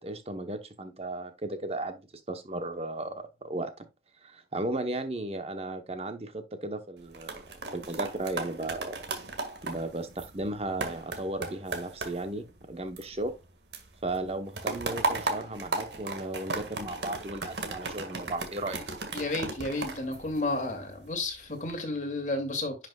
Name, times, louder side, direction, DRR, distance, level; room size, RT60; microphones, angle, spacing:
voice 1, 0.0-3.7 4.2-7.4 7.7-9.0 9.6-13.3 14.0-18.8, right 2 dB, 35° right, 0.9 m, -35 dB
sound 1, 7.0-13.5 13.7-20.9 21.4-21.7, right 3 dB, 75° right, 1.9 m, -36 dB
voice 2, 19.1-22.8, left 2 dB, 45° left, 2.5 m, -32 dB
10.5 x 6.0 x 2.3 m
head